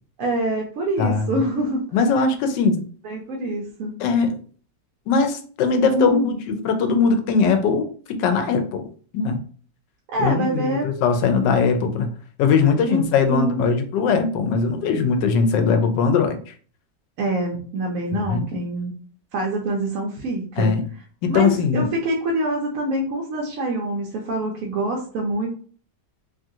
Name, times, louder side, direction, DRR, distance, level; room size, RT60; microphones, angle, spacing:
voice 1, 0.2-1.8 3.0-3.9 5.9-6.5 10.1-10.9 12.9-13.6 17.2-18.9 19.3-20.7 21.3-25.5, right 1 dB, 70° right, -1 dB, 0.8 m, -25 dB
voice 2, 1.0-1.4 1.9-2.9 4.0-4.4 5.1-8.9 9.1-9.4 10.2-12.1 12.4-16.5 18.1-18.5 20.6-20.8 21.2-21.9, left 5 dB, 85° left, 7 dB, 1.2 m, -20 dB
3.0 x 2.4 x 2.6 m, 0.43 s
omnidirectional pair, 1.9 m